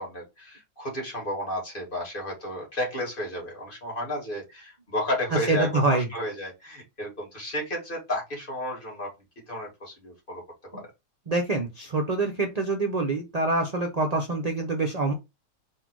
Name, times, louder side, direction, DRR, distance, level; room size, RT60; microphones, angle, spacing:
voice 1, 0.0-9.1 9.5-10.9, left 1 dB, 30° left, -1 dB, 2.0 m, -32 dB
voice 2, 5.5-6.1 10.7-10.8 11.3-15.1, right 2 dB, 40° right, 4 dB, 0.5 m, -25 dB
4.1 x 2.7 x 4.5 m, 0.23 s
omnidirectional pair, 1.7 m